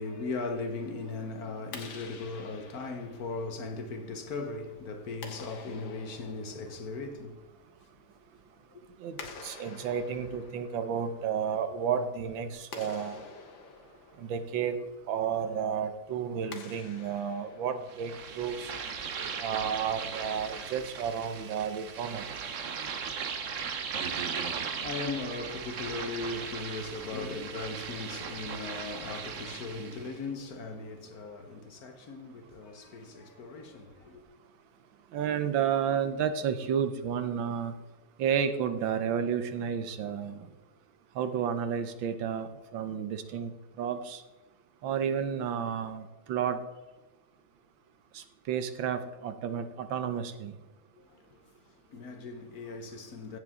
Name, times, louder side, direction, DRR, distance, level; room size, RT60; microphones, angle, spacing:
voice 1, 0.0-7.4 8.7-8.8 9.2-9.3 24.0-34.2 51.0-51.4 51.9-53.4, left 3 dB, 55° left, 1.5 m, -38 dB
Clapping, 1.6-18.3, left 4 dB, 85° left, 2.1 m, -50 dB
voice 2, 9.4-13.2 14.2-18.7 19.4-22.2 35.1-37.7 38.2-40.5 41.2-43.5 43.8-44.2 44.8-46.6 48.1-50.5, right 7 dB, 80° right, 1.6 m, -31 dB
sound 1, 17.9-30.1, right 6 dB, 50° right, 1.1 m, -38 dB
16.0 x 7.2 x 3.7 m
omnidirectional pair, 2.1 m